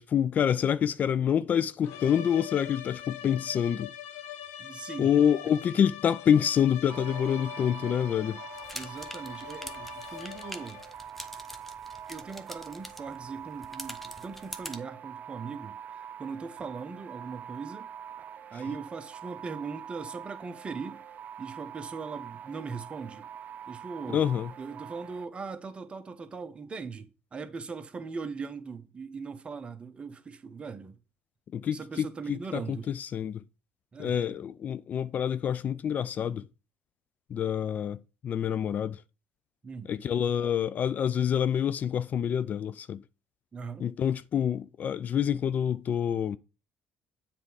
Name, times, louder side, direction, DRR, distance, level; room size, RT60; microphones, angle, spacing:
voice 1, 0.0-3.9 5.0-8.4 24.1-24.5 31.5-33.4 34.0-36.4 37.3-39.0 39.9-43.0 43.8-46.4, left 8 dB, 45° left, 0.3 m, -27 dB
sound 1, 1.8-11.0, left 11 dB, 85° left, 0.7 m, -43 dB
voice 2, 4.6-5.1 8.7-10.8 12.1-15.8 16.2-17.9 18.5-21.0 21.4-23.3 23.7-24.3 24.6-31.0 31.7-32.9 33.9-34.2 39.6-39.9 43.5-43.9, right 5 dB, 30° right, 1.0 m, -40 dB
sound 2, 6.9-25.2, right 9 dB, 50° right, 0.5 m, -44 dB
sound 3, 8.5-14.8, equal, 5° left, 0.9 m, -45 dB
7.5 x 3.5 x 4.7 m
supercardioid pair, 90°, 4 cm